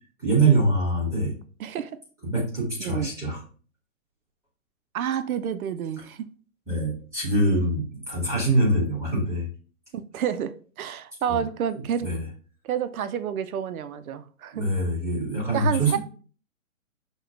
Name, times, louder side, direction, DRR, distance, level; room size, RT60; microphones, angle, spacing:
voice 1, 0.2-1.3 2.2-3.4 6.7-9.5 11.3-11.4 12.0-12.2 14.5-16.0, right 2 dB, 5° right, 1.2 m, -24 dB
voice 2, 1.6-1.9 2.8-3.1 4.9-6.3 10.1-12.1 12.6-14.6 15.5-16.0, right 8 dB, 80° right, 0.5 m, -29 dB
6.1 x 2.2 x 2.4 m
hypercardioid pair, 155°, 42 cm